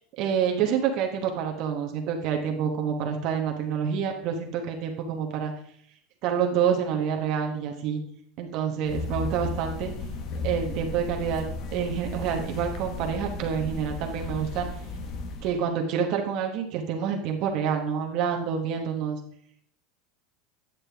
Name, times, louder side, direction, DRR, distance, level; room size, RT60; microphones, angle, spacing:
voice 1, 0.2-5.5 6.2-8.0 8.4-9.9 10.4-14.7 15.4-19.2, right 7 dB, 55° right, 2 dB, 1.1 m, -27 dB
sound 1, 8.8-15.6, left 3 dB, 50° left, 0.9 m, -35 dB
9.2 x 6.6 x 3.4 m, 0.66 s
supercardioid pair, 125°, 0 cm